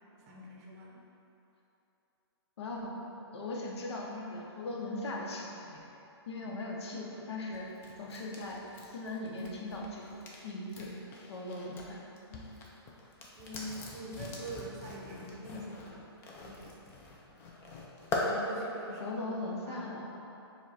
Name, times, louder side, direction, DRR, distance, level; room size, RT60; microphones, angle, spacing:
voice 1, 0.2-1.0 6.4-6.5 13.3-16.0 16.4-16.7 18.2-19.2 19.7-19.9, right 1 dB, 35° right, -3 dB, 0.6 m, -44 dB
voice 2, 2.6-3.0 3.3-5.8 6.3-7.7 8.0-8.6 8.9-10.9 11.3-12.0 12.3-12.4 19.0-20.2, left 2 dB, 75° left, -2 dB, 0.8 m, -39 dB
sound 1, 7.5-11.9 12.2-18.3, left 3 dB, 15° left, 0.4 m, -42 dB
4.8 x 2.2 x 4.1 m, 2.9 s
hypercardioid pair, 155°, 14 cm